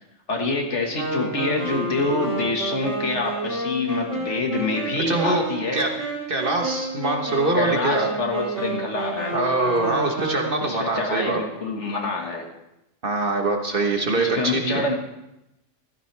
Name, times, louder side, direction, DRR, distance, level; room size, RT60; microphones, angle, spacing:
voice 1, 0.3-5.8 7.6-9.4 10.6-12.5 14.2-14.9, left 3 dB, 70° left, 2 dB, 2.0 m, -26 dB
Wind instrument woodwind instrument, 0.9-10.8, right 2 dB, 80° right, 3.6 m, -30 dB
voice 2, 5.1-5.4 5.7-5.9 6.3-8.1 9.3-11.4 13.0-14.8, right 2 dB, 45° right, 3 dB, 1.4 m, -23 dB
15.0 x 13.5 x 3.4 m, 0.90 s
omnidirectional pair, 1.3 m